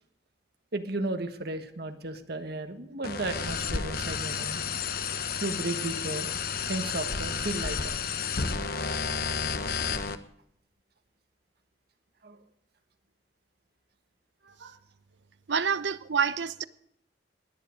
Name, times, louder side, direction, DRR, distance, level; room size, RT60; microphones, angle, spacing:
voice 1, 0.7-4.6 5.4-6.3 6.7-7.9 12.2-12.4 14.4-14.7, right 2 dB, 60° right, 1.3 m, -34 dB
sound 1, 3.0-10.1, left 5 dB, 55° left, 1.1 m, -31 dB
voice 2, 15.5-16.6, right 6 dB, 80° right, 0.8 m, -27 dB
18.5 x 10.5 x 5.1 m
head